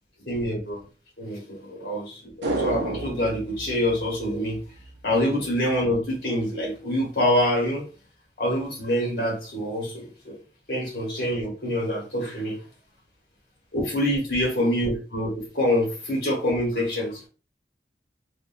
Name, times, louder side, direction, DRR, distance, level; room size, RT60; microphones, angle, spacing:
voice 1, 0.2-0.8 1.2-4.6 5.0-7.8 8.4-10.4 10.7-12.6 13.7-17.2, left 1 dB, 55° left, 1.4 m, -26 dB
sound 1, 2.4-4.9 5.2-5.3, right 2 dB, 75° right, 0.6 m, -31 dB
2.8 x 2.3 x 2.7 m
head